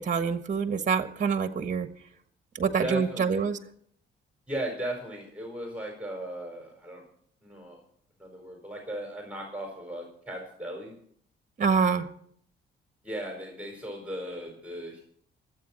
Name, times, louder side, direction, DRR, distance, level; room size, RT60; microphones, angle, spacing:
voice 1, 0.0-1.9 2.5-3.6 11.6-12.1, right 6 dB, 40° right, 8 dB, 1.4 m, -26 dB
voice 2, 2.8-3.5 4.5-7.0 7.4-7.8 8.2-10.9 13.0-15.0, right 1 dB, 5° right, 0 dB, 4.4 m, -36 dB
25.0 x 8.6 x 4.3 m, 0.64 s
cardioid pair, 90°, 20 cm